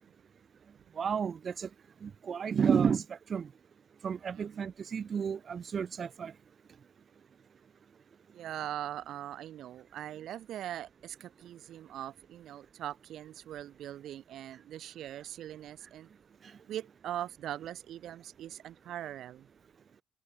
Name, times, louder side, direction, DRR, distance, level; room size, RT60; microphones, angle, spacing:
voice 1, 1.0-1.7 2.0-3.5 4.0-6.3, right 7 dB, 40° right, 1.2 m, -31 dB
voice 2, 4.3-4.7 8.3-16.1 16.7-19.5, right 12 dB, 70° right, 3.5 m, -41 dB
cardioid pair, 135°, 0 cm